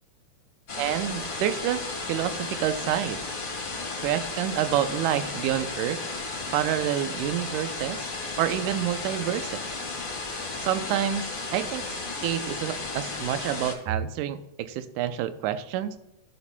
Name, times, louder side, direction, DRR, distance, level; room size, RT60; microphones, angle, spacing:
sound 1, 0.7-13.7, left 3 dB, 45° left, 2.5 m, -34 dB
voice 1, 0.8-1.8 2.1-3.2 4.0-6.0 6.5-8.1 8.4-9.6 10.6-16.0, right 11 dB, 80° right, 11 dB, 2.0 m, -28 dB
14.5 x 7.0 x 2.2 m, 0.90 s
omnidirectional pair, 3.6 m